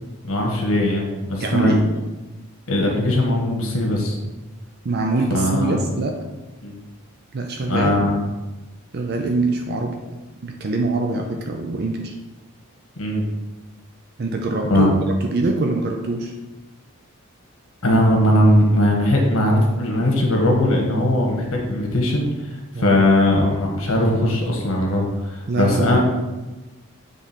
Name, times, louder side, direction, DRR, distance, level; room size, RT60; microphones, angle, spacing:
voice 1, 0.3-1.8 2.7-4.2 5.3-5.8 6.6-6.8 7.7-8.2 13.0-13.2 14.7-14.9 17.8-26.0, left 1 dB, 75° left, 0 dB, 1.5 m, -19 dB
voice 2, 1.4-1.8 4.8-6.1 7.3-8.1 8.9-10.0 10.4-12.1 14.2-14.9 15.2-16.3 22.7-23.0 25.5-26.0, right 3 dB, 50° right, 2 dB, 0.5 m, -23 dB
7.4 x 3.4 x 4.3 m, 1.1 s
head